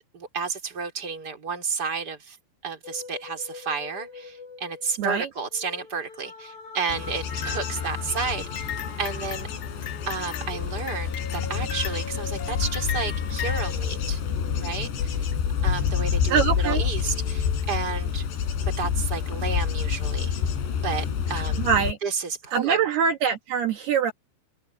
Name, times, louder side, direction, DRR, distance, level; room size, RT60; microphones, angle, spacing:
voice 1, 0.1-2.4 2.6-9.5 10.1-14.2 14.6-15.2 15.6-18.3 18.6-20.4 20.8-21.6 22.0-22.8, right 5 dB, 25° right, 4.0 m, -32 dB
sound 1, 2.8-16.6 17.0-18.7, left 4 dB, 55° left, 7.2 m, -44 dB
voice 2, 5.0-5.3 16.3-16.9 21.3-22.0 22.5-24.1, right 7 dB, 65° right, 3.5 m, -24 dB
Bird / Insect / Wind, 6.9-21.9, left 7 dB, 70° left, 5.8 m, -28 dB
sound 2, 7.3-13.7, left 9 dB, 90° left, 1.4 m, -38 dB
open air
omnidirectional pair, 5.2 m